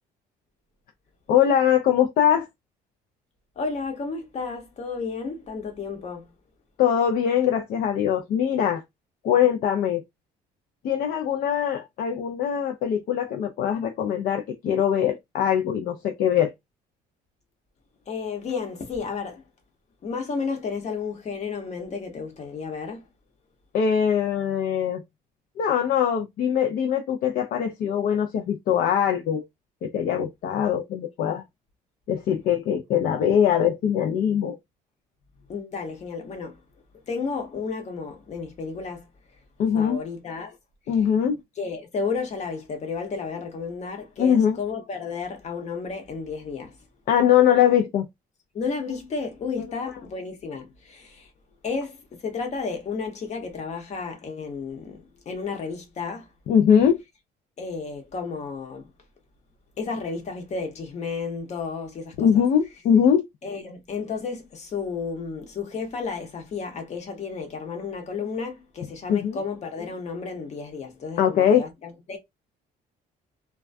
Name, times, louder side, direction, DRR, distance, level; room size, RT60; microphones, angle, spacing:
voice 1, 1.3-2.5 6.8-8.8 9.2-10.0 10.8-16.5 23.7-25.0 25.6-29.4 29.8-31.4 32.1-34.6 39.6-40.0 40.9-41.4 44.2-44.6 47.1-48.1 49.6-49.7 56.5-57.0 62.2-63.2 69.1-69.4 71.2-71.7, left 9 dB, 60° left, 0.4 m, -22 dB
voice 2, 3.6-6.3 18.1-19.4 20.0-23.1 35.5-36.6 37.1-39.0 39.7-40.6 41.6-46.8 48.5-51.3 51.6-52.0 52.2-56.3 57.6-58.9 59.8-62.3 63.4-71.7 72.1-72.2, left 5 dB, 40° left, 0.9 m, -32 dB
2.2 x 2.2 x 2.5 m
cardioid pair, 110°, 17 cm